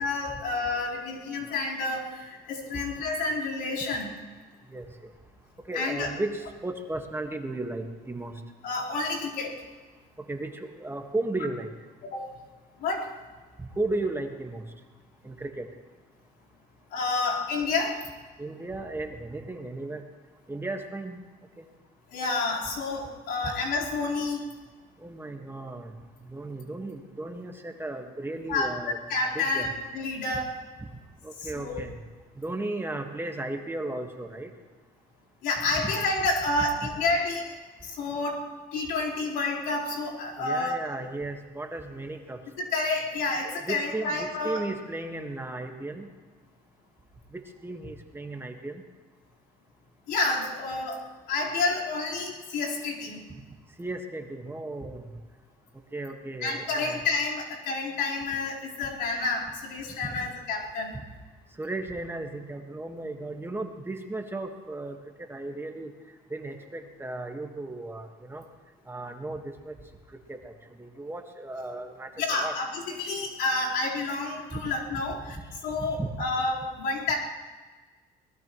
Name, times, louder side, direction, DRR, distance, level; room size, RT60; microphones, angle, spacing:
voice 1, 0.0-4.1 5.7-6.1 8.6-9.6 12.0-12.3 12.8-13.1 16.9-18.0 22.1-24.4 28.5-30.6 31.4-31.8 35.4-37.6 37.8-41.0 42.6-44.6 50.1-53.2 56.4-60.9 72.2-75.4 75.6-77.1, left 3 dB, 80° left, -4 dB, 4.2 m, -29 dB
voice 2, 5.7-8.4 10.3-11.7 13.8-14.6 15.2-15.7 18.4-20.0 20.5-21.2 25.0-25.9 26.3-29.0 29.3-29.7 31.2-31.9 32.4-34.5 35.8-35.9 40.4-42.4 43.7-46.1 47.3-48.8 53.8-55.0 55.9-57.0 60.9-61.0 61.6-65.0 65.3-65.9 66.3-68.4 68.9-69.7 70.3-70.5 70.8-72.5 74.5-74.6 75.8-76.1, right 2 dB, 15° right, 4 dB, 1.6 m, -35 dB
23.5 x 19.5 x 3.1 m, 1.3 s
cardioid pair, 110°, 17 cm